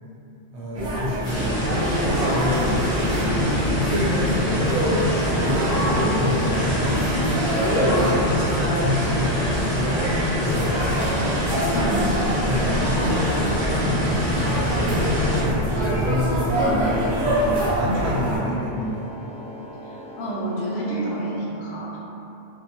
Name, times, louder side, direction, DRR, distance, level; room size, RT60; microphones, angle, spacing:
voice 1, 0.5-1.6 2.0-7.2 7.8-10.9 12.4-19.1, equal, 70° right, -5 dB, 0.8 m, -28 dB
sound 1, 0.7-18.4, equal, 45° right, 0.6 m, -26 dB
sound 2, 1.2-15.4, left 1 dB, 5° left, 1.0 m, -25 dB
sound 3, 4.1-21.4, right 1 dB, 30° left, 1.0 m, -40 dB
voice 2, 7.7-8.2 11.7-12.4 19.8-22.0, right 1 dB, 70° left, -5 dB, 0.8 m, -29 dB
2.8 x 2.2 x 2.6 m, 2.9 s
omnidirectional pair, 1.2 m